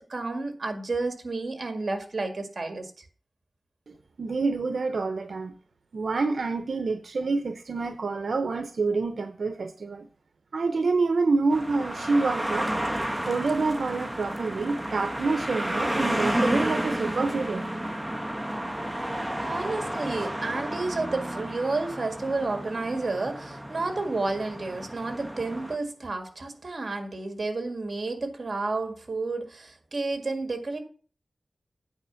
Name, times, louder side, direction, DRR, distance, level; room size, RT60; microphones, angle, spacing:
voice 1, 0.1-3.0 19.4-30.8, right 3 dB, 55° right, 2.0 m, -31 dB
voice 2, 3.9-5.5 5.9-10.1 10.5-12.7 13.3-17.7, right 3 dB, 85° right, 0.7 m, -27 dB
sound 1, 11.5-25.8, right 1 dB, 5° right, 1.2 m, -31 dB
9.0 x 5.0 x 6.9 m
wide cardioid pair, 85°, 0 cm